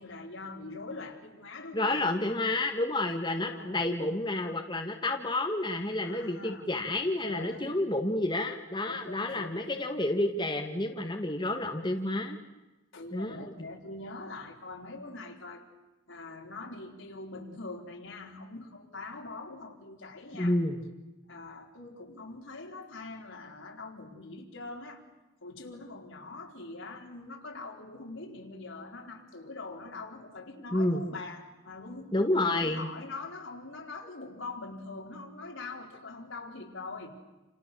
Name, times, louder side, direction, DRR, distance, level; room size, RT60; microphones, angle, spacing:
voice 1, 0.0-2.1 3.4-3.8 6.0-6.7 7.2-7.8 8.9-9.6 12.9-15.6 16.1-20.6 21.3-25.0 25.4-37.1, left 3 dB, 70° left, 1 dB, 4.4 m, -43 dB
voice 2, 1.7-12.4 13.1-13.4 20.4-20.8 30.7-31.0 32.1-32.9, left 1 dB, 20° left, 3 dB, 1.8 m, -30 dB
29.5 x 28.5 x 7.0 m, 1.1 s
head